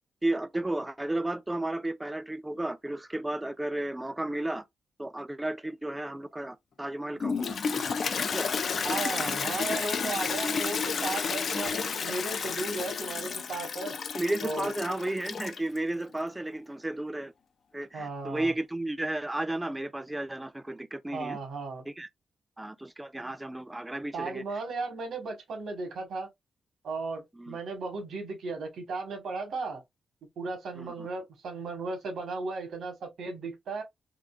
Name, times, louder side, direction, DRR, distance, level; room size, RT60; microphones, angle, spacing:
voice 1, 0.2-4.6 5.0-7.6 8.2-8.5 14.1-17.3 17.7-21.4 21.9-22.1 22.6-24.4 27.4-27.6 30.8-31.1, right 1 dB, 15° right, 0.4 m, -33 dB
Toilet flush, 7.2-15.8, left 5 dB, 60° left, 0.5 m, -31 dB
voice 2, 8.8-14.0 14.4-14.7 17.9-18.5 21.1-21.8 24.1-26.3 26.8-29.8 30.4-33.8, right 3 dB, 80° right, 1.4 m, -35 dB
3.7 x 2.5 x 2.4 m
cardioid pair, 90°, 0 cm